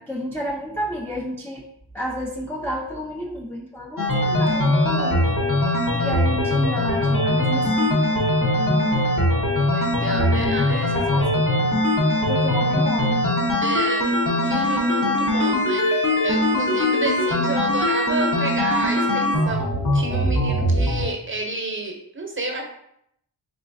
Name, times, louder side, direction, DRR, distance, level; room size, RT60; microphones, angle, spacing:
voice 1, 0.0-1.6 1.9-8.0 8.4-9.1 10.1-11.4 12.3-13.3, left 1 dB, 5° left, -2 dB, 0.3 m, -30 dB
sound 1, 4.0-21.0, left 1 dB, 45° left, 0.9 m, -21 dB
voice 2, 9.6-11.3 13.6-14.1 14.4-22.6, right 2 dB, 30° right, 2 dB, 0.7 m, -30 dB
3.9 x 3.1 x 2.5 m, 0.75 s
wide cardioid pair, 85°, 43 cm